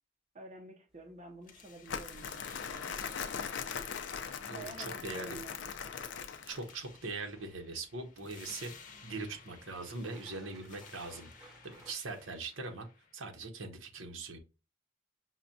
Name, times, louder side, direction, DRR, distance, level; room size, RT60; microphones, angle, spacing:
voice 1, 0.3-3.0 4.5-5.8, right 2 dB, 35° right, 2 dB, 0.6 m, -50 dB
sound 1, 0.9-11.9, right 1 dB, ahead, 0.9 m, -62 dB
sound 2, 1.4-13.4, left 5 dB, 40° left, 0.7 m, -56 dB
Crumpling crinkling, 1.9-6.7, left 6 dB, 65° left, 0.4 m, -40 dB
voice 2, 4.5-5.4 6.5-8.7 9.0-12.9 13.1-14.4, right 3 dB, 85° right, 3 dB, 0.9 m, -41 dB
5.8 x 2.2 x 2.6 m, 0.31 s
head